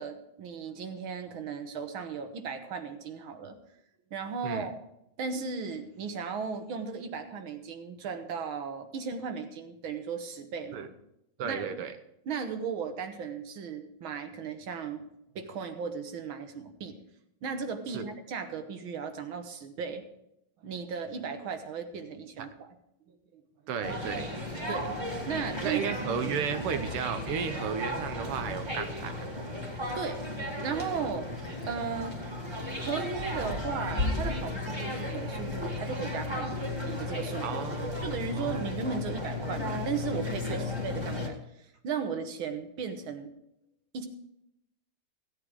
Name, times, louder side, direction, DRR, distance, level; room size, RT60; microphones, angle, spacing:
voice 1, 0.0-3.6 4.1-4.8 5.2-10.9 11.4-11.6 12.3-15.0 15.4-17.0 17.4-20.0 20.6-22.7 23.1-23.4 24.7-24.9 25.3-25.8 30.0-30.2 30.6-31.3 31.7-32.2 32.8-37.5 38.0-43.3 43.9-44.1, right 5 dB, 70° right, 7 dB, 2.0 m, -36 dB
voice 2, 11.4-11.9 17.9-18.1 23.7-24.3 25.6-29.2 37.4-38.6 40.5-40.7, right 7 dB, 85° right, 9 dB, 1.9 m, -34 dB
sound 1, 23.8-41.3, left 2 dB, 15° right, 1.7 m, -34 dB
15.5 x 8.8 x 4.8 m, 0.81 s
omnidirectional pair, 2.4 m